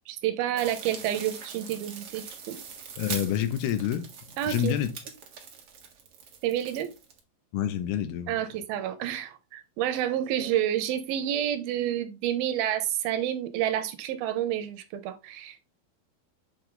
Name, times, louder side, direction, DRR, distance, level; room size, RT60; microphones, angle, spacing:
voice 1, 0.1-2.6 4.4-4.8 6.4-6.9 8.3-15.6, right 11 dB, 80° right, 2.6 m, -29 dB
sound 1, 0.6-7.2, right 6 dB, 60° right, 1.5 m, -42 dB
voice 2, 3.0-4.1 4.5-4.9 7.5-8.4, left 10 dB, 85° left, 2.8 m, -28 dB
7.2 x 4.6 x 3.8 m
omnidirectional pair, 4.4 m